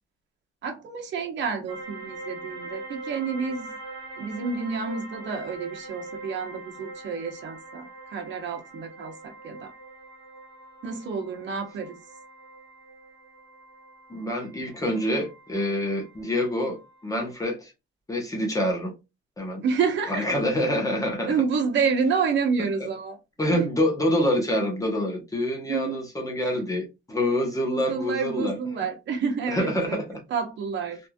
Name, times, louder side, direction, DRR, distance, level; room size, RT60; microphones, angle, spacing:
voice 1, 0.6-3.8 4.2-9.7 10.8-12.0 19.6-20.3 21.3-23.2 23.5-23.7 25.7-26.0 26.4-26.5 27.5-30.0 30.3-31.0, right 5 dB, 60° right, 0.9 m, -29 dB
sound 1, 1.7-17.3, right 2 dB, 25° right, 1.4 m, -43 dB
voice 2, 14.1-17.7 18.1-18.9 19.4-19.6 20.1-21.4 23.4-28.6 29.5-30.2, left 1 dB, 15° left, 0.8 m, -26 dB
3.1 x 2.6 x 2.2 m
cardioid pair, 140°, 21 cm